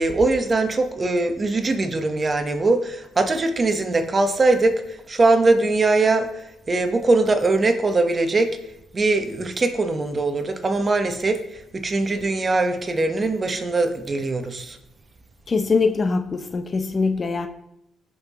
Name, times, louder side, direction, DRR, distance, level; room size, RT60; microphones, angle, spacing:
voice 1, 0.0-4.8 5.1-6.3 6.7-8.6 8.9-11.4 11.7-14.8, right 3 dB, 35° right, 6 dB, 1.2 m, -21 dB
voice 2, 15.5-17.5, left 4 dB, 40° left, 8 dB, 0.8 m, -22 dB
16.5 x 5.6 x 3.1 m, 0.81 s
cardioid pair, 75°, 0 cm